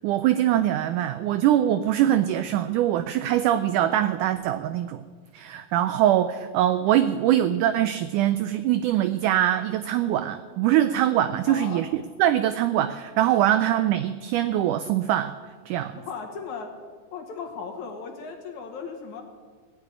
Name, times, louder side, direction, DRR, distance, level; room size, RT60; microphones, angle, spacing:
voice 1, 0.0-5.0 5.3-15.3 15.7-16.0, right 12 dB, 85° right, 12 dB, 1.8 m, -23 dB
voice 2, 11.4-11.8 13.5-13.6 16.0-16.8 17.1-19.2, left 5 dB, 60° left, 2 dB, 2.7 m, -36 dB
17.0 x 7.0 x 9.6 m, 1.5 s
omnidirectional pair, 4.2 m